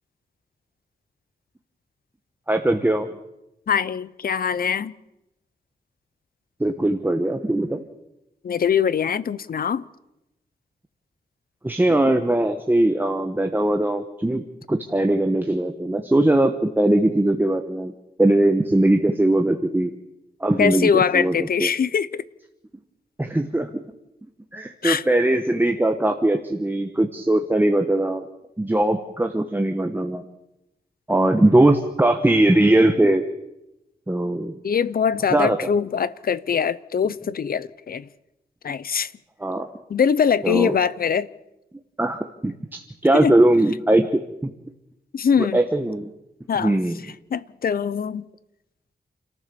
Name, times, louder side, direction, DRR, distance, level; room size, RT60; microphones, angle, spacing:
voice 1, 2.5-3.1 6.6-7.8 11.6-17.9 18.2-19.9 20.4-21.3 21.6-21.7 23.2-23.7 24.5-28.2 28.6-30.2 31.1-33.2 34.1-34.6 35.3-35.6 39.4-39.7 40.4-40.7 42.0-44.5 45.5-46.1 46.6-47.0, right 1 dB, 10° right, 1.2 m, -20 dB
voice 2, 3.7-4.9 8.4-9.8 20.6-22.2 24.8-25.0 31.2-31.4 34.6-38.1 38.6-39.1 39.9-41.3 43.1-43.4 45.1-45.6 46.5-46.8 47.0-48.2, left 7 dB, 60° left, 0.8 m, -23 dB
29.0 x 14.0 x 7.0 m
wide cardioid pair, 125°, 17 cm